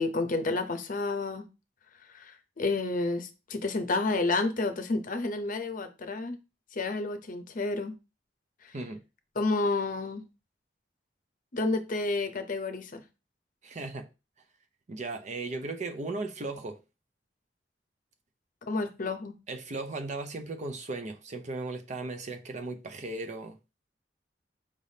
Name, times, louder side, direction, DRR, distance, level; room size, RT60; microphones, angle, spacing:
voice 1, 0.0-1.5 2.1-6.4 6.7-7.9 8.6-8.7 9.4-10.2 11.5-13.0 18.7-19.4, left 3 dB, 50° left, 0.7 m, -30 dB
voice 2, 13.6-14.1 14.9-16.8 19.5-23.6, right 3 dB, 40° right, 0.6 m, -36 dB
5.0 x 3.4 x 2.7 m
head